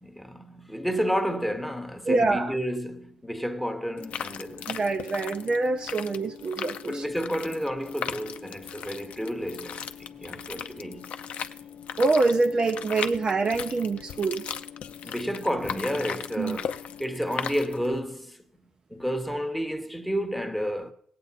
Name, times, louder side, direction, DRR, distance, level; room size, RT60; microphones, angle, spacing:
voice 1, 0.0-4.7 6.8-11.1 15.0-18.4 18.9-20.9, equal, ahead, 1.0 m, -31 dB
voice 2, 2.1-2.5 4.7-7.0 12.0-14.4 16.4-16.6, right 3 dB, 40° right, 0.6 m, -25 dB
sound 1, 4.0-18.0, left 8 dB, 65° left, 0.5 m, -38 dB
17.5 x 8.5 x 4.1 m
cardioid pair, 95°, 2 cm